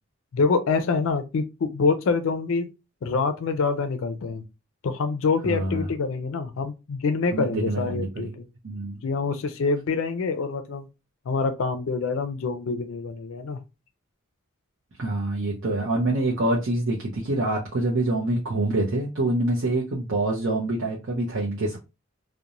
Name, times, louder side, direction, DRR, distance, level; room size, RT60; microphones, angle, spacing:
voice 1, 0.3-2.7 3.0-4.4 4.8-8.5 9.0-10.9 11.3-13.6, left 4 dB, 70° left, 0.4 m, -26 dB
voice 2, 5.4-5.9 7.3-8.3 8.6-9.0 15.0-21.8, right 2 dB, 65° right, 0.6 m, -26 dB
2.5 x 2.1 x 2.9 m
head